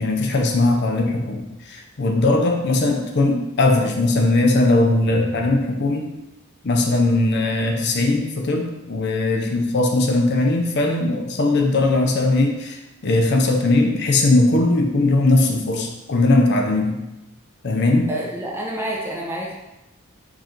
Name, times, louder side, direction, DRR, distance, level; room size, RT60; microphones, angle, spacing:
voice 1, 0.0-6.1 6.6-17.0 17.6-18.1, left 2 dB, 50° left, 2 dB, 0.6 m, -19 dB
voice 2, 18.1-19.5, right 1 dB, 10° right, -2 dB, 0.7 m, -28 dB
4.7 x 2.5 x 4.4 m, 0.97 s
head